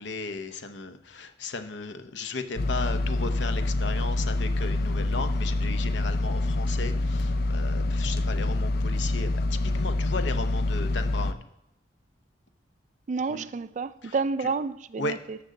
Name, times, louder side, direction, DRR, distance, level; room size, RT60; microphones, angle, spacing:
voice 1, 0.0-11.4 13.3-13.4 14.0-14.1 15.0-15.2, left 3 dB, 80° left, 0.8 m, -35 dB
sound 1, 2.6-11.3, left 2 dB, 55° left, 0.5 m, -26 dB
voice 2, 13.1-15.4, right 4 dB, 40° right, 0.3 m, -30 dB
13.0 x 6.7 x 3.9 m
head